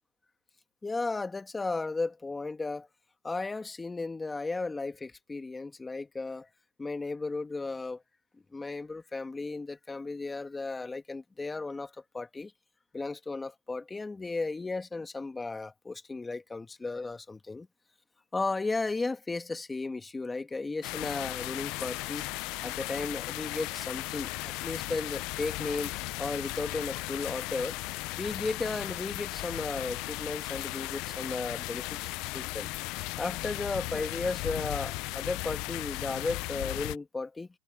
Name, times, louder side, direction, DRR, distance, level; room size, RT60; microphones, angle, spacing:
voice 1, 0.8-2.9 3.2-6.5 6.8-8.0 8.5-12.5 12.9-17.7 18.3-22.3 22.6-25.9 26.2-27.8 28.2-32.0 32.3-32.7 33.2-37.5, left 3 dB, 15° left, 2.0 m, -35 dB
sound 1, 20.8-37.0, left 22 dB, 65° left, 0.4 m, -36 dB
supercardioid pair, 120°, 0 cm